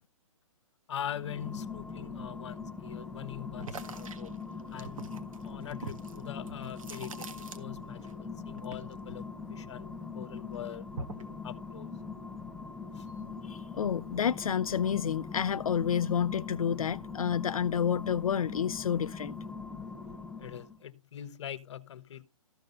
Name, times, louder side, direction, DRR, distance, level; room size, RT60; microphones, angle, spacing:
voice 1, 0.9-4.3 4.7-10.9 11.4-11.9 12.9-13.1 20.4-22.2, left 10 dB, 55° left, 1.2 m, -43 dB
sound 1, 1.1-20.8, left 4 dB, ahead, 0.7 m, -42 dB
sound 2, 3.6-8.1 8.4-10.0 10.4-11.4, right 4 dB, 70° right, 1.8 m, -44 dB
voice 2, 13.4-19.3, left 8 dB, 80° left, 0.5 m, -29 dB
14.0 x 5.2 x 5.4 m
hypercardioid pair, 140°, 18 cm